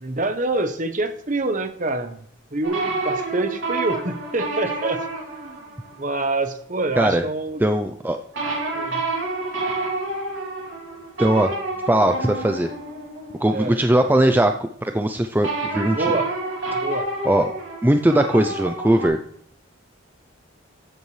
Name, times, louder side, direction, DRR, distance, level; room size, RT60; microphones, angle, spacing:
voice 1, 0.0-2.2 2.5-5.7 6.0-7.6 8.7-9.0 13.5-13.8 15.9-16.3 16.7-17.1, right 2 dB, 40° right, 9 dB, 1.0 m, -26 dB
sound 1, 2.6-6.1 8.3-14.1 15.4-19.1, right 2 dB, 70° right, 2.9 m, -29 dB
voice 2, 7.6-8.2 11.2-11.5 11.9-12.7 13.4-16.1 17.2-17.5 17.8-19.2, right 1 dB, 10° right, 6 dB, 0.4 m, -19 dB
14.0 x 8.1 x 3.2 m, 0.64 s
head